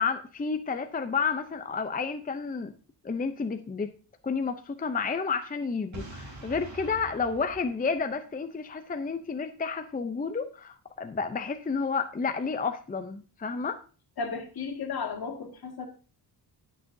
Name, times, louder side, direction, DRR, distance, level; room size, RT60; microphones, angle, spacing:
voice 1, 0.0-2.7 3.0-3.9 4.2-13.8, left 5 dB, 20° left, 8 dB, 0.6 m, -31 dB
Boom, 5.9-8.8, right 1 dB, 45° right, 3.3 m, -45 dB
voice 2, 14.2-15.9, left 5 dB, 60° left, 2 dB, 2.1 m, -34 dB
18.0 x 6.3 x 2.7 m, 0.37 s
wide cardioid pair, 115°, 41 cm